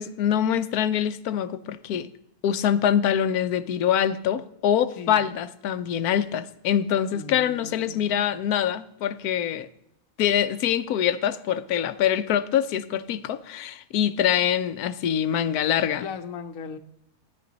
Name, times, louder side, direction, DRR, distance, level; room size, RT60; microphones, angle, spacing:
voice 1, 0.0-2.1 2.4-9.7 10.2-16.0, left 9 dB, 90° left, 13 dB, 1.2 m, -24 dB
voice 2, 7.1-8.2 16.0-16.8, left 5 dB, 65° left, 10 dB, 1.2 m, -38 dB
13.0 x 10.5 x 3.9 m, 0.75 s
omnidirectional pair, 1.5 m